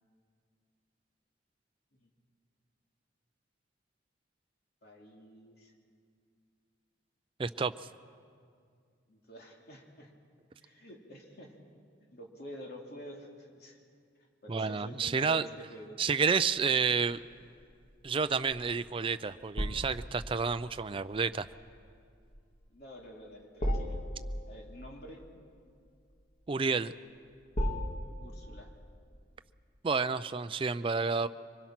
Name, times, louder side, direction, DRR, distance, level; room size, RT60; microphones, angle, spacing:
voice 1, 4.8-5.7 9.1-10.1 10.6-11.6 12.1-13.8 14.2-16.0 22.7-24.0 24.5-25.2 28.2-28.7, equal, 55° left, 0 dB, 2.7 m, -49 dB
voice 2, 7.4-7.7 14.5-15.5 16.0-17.2 18.0-21.5 26.5-26.9 29.8-31.3, right 5 dB, 30° right, 12 dB, 0.4 m, -30 dB
sound 1, 16.5-29.0, equal, 40° left, 2.1 m, -39 dB
24.5 x 20.5 x 5.9 m, 2.2 s
head